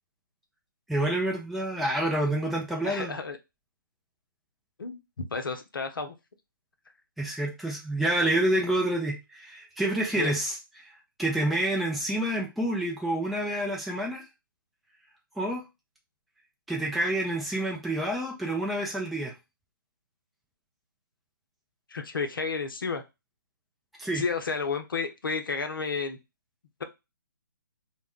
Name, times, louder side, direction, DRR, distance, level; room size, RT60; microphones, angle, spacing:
voice 1, 0.9-3.2 7.2-10.9 11.2-14.2 15.4-15.6 16.7-19.3 24.0-24.2, right 1 dB, ahead, -1 dB, 0.4 m, -28 dB
voice 2, 2.8-3.4 4.8-6.1 10.1-10.3 21.9-23.0 24.1-26.2, left 4 dB, 80° left, 6 dB, 0.6 m, -31 dB
2.1 x 2.1 x 3.5 m, 0.24 s
figure-of-eight pair, 140°, 11 cm